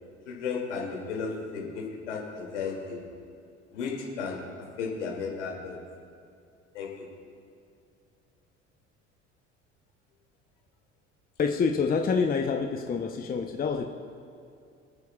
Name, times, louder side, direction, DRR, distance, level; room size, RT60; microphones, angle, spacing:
voice 1, 0.3-3.0 3.7-4.4 4.8-5.8 6.7-7.0, left 5 dB, 75° left, -2 dB, 2.7 m, -34 dB
voice 2, 11.4-13.9, left 5 dB, 25° left, 5 dB, 0.8 m, -27 dB
27.0 x 9.3 x 2.4 m, 2.4 s
figure-of-eight pair, 60°, 36 cm